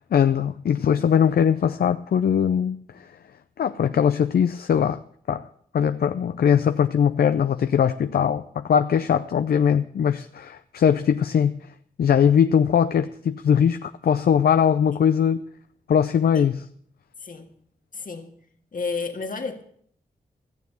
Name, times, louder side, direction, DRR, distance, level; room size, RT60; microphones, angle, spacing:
voice 1, 0.1-3.1 3.6-5.0 5.3-5.5 5.7-11.6 12.0-15.4 15.9-16.7, left 8 dB, 75° left, 10 dB, 0.5 m, -21 dB
voice 2, 17.9-18.3 18.7-19.6, left 4 dB, 60° left, 5 dB, 1.8 m, -31 dB
14.5 x 7.1 x 7.9 m, 0.62 s
cardioid pair, 55°, 16 cm